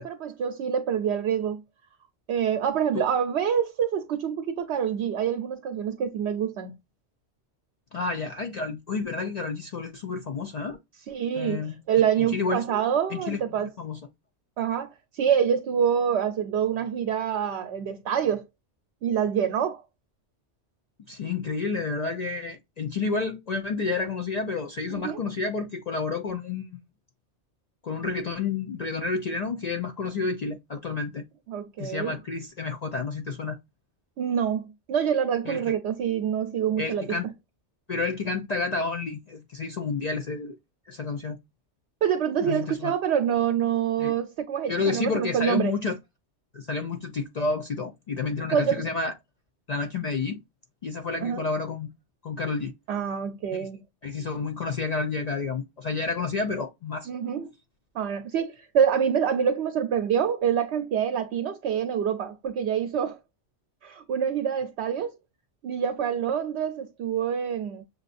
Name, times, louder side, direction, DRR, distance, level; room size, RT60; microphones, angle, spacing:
voice 1, 0.0-1.6 2.3-6.7 11.1-13.7 14.6-18.4 19.0-19.8 24.9-25.2 31.5-32.2 34.2-37.0 42.0-45.7 48.4-48.8 51.2-51.4 52.9-53.8 57.1-57.5 57.9-63.2 63.8-65.1 65.6-67.8, right 8 dB, 75° right, 0.8 m, -26 dB
voice 2, 7.9-10.8 11.4-11.7 12.2-12.6 13.1-13.4 13.8-14.0 21.1-26.8 27.8-31.2 31.8-33.6 35.5-35.6 36.8-37.3 37.9-40.6 40.9-41.4 42.4-42.9 44.0-44.1 44.7-46.0 46.5-49.1 49.7-50.4 50.8-51.9 52.2-52.7 53.5-53.7 54.0-57.1, left 4 dB, 55° left, 0.4 m, -30 dB
6.4 x 2.3 x 2.5 m
omnidirectional pair, 1.2 m